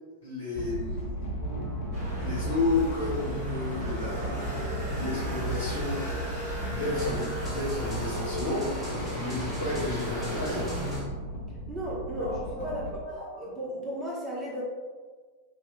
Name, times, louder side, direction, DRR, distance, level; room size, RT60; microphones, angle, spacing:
voice 1, 0.2-1.2 2.2-4.7 4.9-6.0 6.7-10.8 12.2-12.7 13.0-13.2, left 3 dB, 80° left, -11 dB, 1.3 m, -32 dB
sound 1, 0.5-12.9, right 1 dB, 55° left, 0.9 m, -35 dB
sound 2, 1.4-11.0, right 1 dB, 5° right, 1.3 m, -42 dB
sound 3, 1.9-11.0, equal, 45° right, 1.3 m, -37 dB
voice 2, 11.7-13.0 13.4-14.6, equal, 20° right, -4 dB, 0.7 m, -34 dB
5.2 x 2.2 x 2.2 m, 1.5 s
figure-of-eight pair, 90°, 0 cm